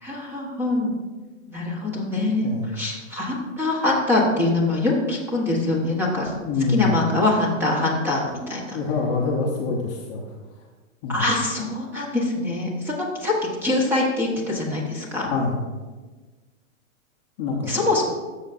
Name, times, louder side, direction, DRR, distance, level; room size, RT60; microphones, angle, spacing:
voice 1, 0.0-0.9 1.5-6.3 6.7-8.8 11.1-13.3 13.6-15.3 17.7-18.0, left 2 dB, 5° right, -3 dB, 1.0 m, -24 dB
voice 2, 2.4-2.8 6.4-6.9 8.7-10.3 11.0-11.2 15.2-15.6 17.4-17.7, left 4 dB, 25° left, -2 dB, 0.7 m, -25 dB
13.5 x 7.0 x 2.5 m, 1.3 s
hypercardioid pair, 165°, 40 cm